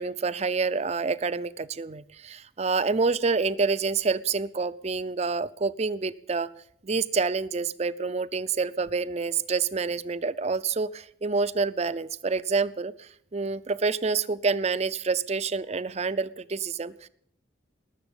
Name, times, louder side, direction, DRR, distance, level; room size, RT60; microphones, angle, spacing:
voice 1, 0.0-6.5 6.8-17.1, right 4 dB, 35° right, 16 dB, 0.5 m, -27 dB
19.0 x 7.1 x 8.8 m, 0.69 s
head